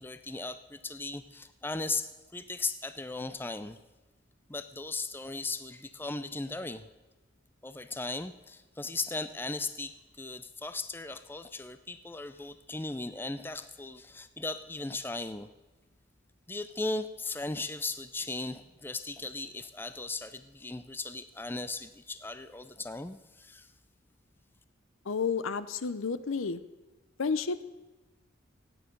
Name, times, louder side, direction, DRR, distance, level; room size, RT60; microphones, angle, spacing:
voice 1, 0.0-3.8 4.5-6.9 7.6-15.5 16.5-23.7, left 3 dB, 10° left, 11 dB, 0.4 m, -37 dB
voice 2, 25.1-26.6 27.2-27.6, left 5 dB, 85° left, 14 dB, 0.6 m, -31 dB
16.5 x 9.4 x 5.3 m, 1.2 s
head